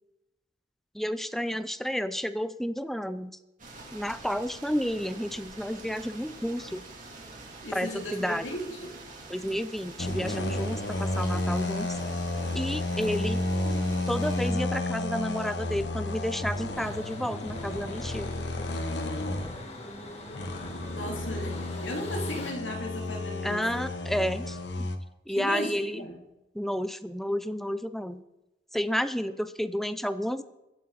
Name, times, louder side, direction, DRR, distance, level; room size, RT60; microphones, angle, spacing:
voice 1, 0.9-3.3 3.9-6.8 7.7-8.5 9.3-12.0 12.5-13.4 14.1-18.3 23.4-24.9 25.3-26.1 26.5-28.2 28.7-30.4, equal, ahead, 12 dB, 0.5 m, -31 dB
sound 1, 3.6-14.5, right 2 dB, 45° right, 3.1 m, -46 dB
voice 2, 7.6-9.0 20.9-23.6 25.4-26.2, equal, 90° left, 0 dB, 3.2 m, -36 dB
sound 2, 10.0-19.8 20.3-25.0, left 2 dB, 65° left, 1.2 m, -32 dB
sound 3, 16.7-22.5, left 2 dB, 35° left, 2.3 m, -43 dB
23.0 x 8.2 x 4.2 m, 0.97 s
head